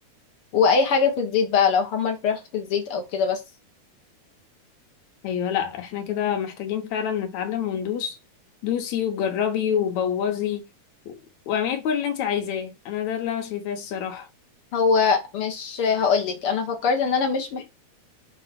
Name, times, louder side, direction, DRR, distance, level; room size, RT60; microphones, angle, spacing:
voice 1, 0.5-3.4 14.7-17.6, left 5 dB, 55° left, 1.8 m, -22 dB
voice 2, 5.2-8.2 8.6-10.6 11.1-11.2 11.5-14.3, left 8 dB, 75° left, 2.5 m, -27 dB
6.5 x 3.0 x 5.8 m
omnidirectional pair, 3.4 m